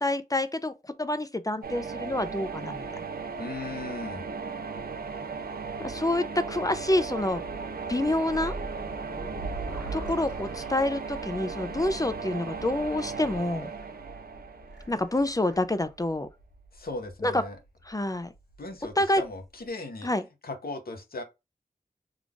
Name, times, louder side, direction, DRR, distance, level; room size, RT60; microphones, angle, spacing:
voice 1, 0.0-3.0 5.8-7.4 7.9-8.6 9.9-13.7 14.9-16.3 17.2-17.4 17.9-18.3 19.0-19.2 20.0-20.2, left 1 dB, 20° left, 0.4 m, -27 dB
Thunder, 1.6-19.7, right 2 dB, 90° left, 1.9 m, -46 dB
sound 1, 1.6-15.5, right 5 dB, 75° right, 0.5 m, -37 dB
voice 2, 3.4-4.3 16.7-17.6 18.6-20.1 20.4-21.2, left 2 dB, 70° left, 0.8 m, -37 dB
sound 2, 8.3-15.8, right 1 dB, 5° right, 1.0 m, -46 dB
3.7 x 2.4 x 3.4 m
wide cardioid pair, 65°, 16 cm